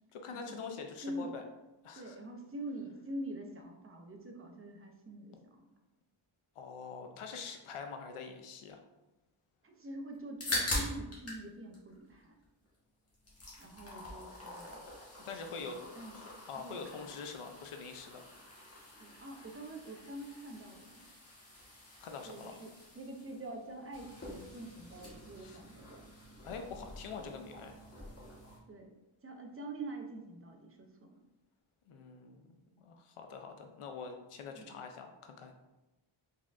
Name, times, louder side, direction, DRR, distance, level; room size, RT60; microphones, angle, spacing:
voice 1, 0.1-1.4 1.8-2.2 6.6-8.8 15.2-15.8 16.1-18.2 22.0-22.6 25.4-25.6 26.4-27.8 31.9-32.4 32.8-35.5, left 5 dB, 90° left, 5 dB, 0.5 m, -45 dB
voice 2, 1.9-5.6 9.6-12.4 13.6-14.8 15.1-16.2 16.5-17.1 19.0-21.0 22.2-26.1 28.7-28.9 29.2-31.2 34.5-34.8, right 1 dB, 30° right, 2 dB, 0.5 m, -45 dB
sound 1, 10.1-11.4 11.7-12.7 13.1-28.6, left 1 dB, 30° left, 1.1 m, -44 dB
4.1 x 3.5 x 2.4 m, 1.0 s
wide cardioid pair, 140°, 50 cm